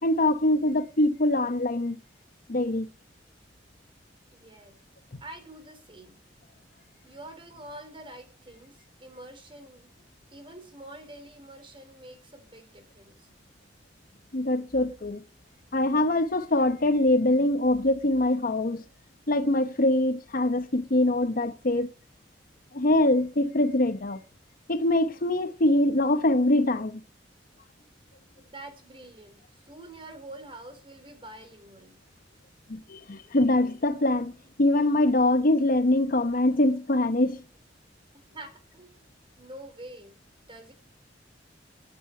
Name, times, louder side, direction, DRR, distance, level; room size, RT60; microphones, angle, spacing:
voice 1, 0.0-2.0 2.5-2.9 14.3-15.2 15.7-18.8 19.3-21.9 22.7-24.2 24.7-27.0 32.7-34.3 34.6-37.4, left 1 dB, 50° left, 0.9 m, -23 dB
voice 2, 4.3-4.8 5.2-6.2 7.0-10.0 10.3-13.3 14.9-15.0 28.4-32.0 38.1-39.0 39.4-40.2 40.5-40.7, right 1 dB, 30° right, 3.7 m, -46 dB
11.5 x 9.1 x 8.5 m
head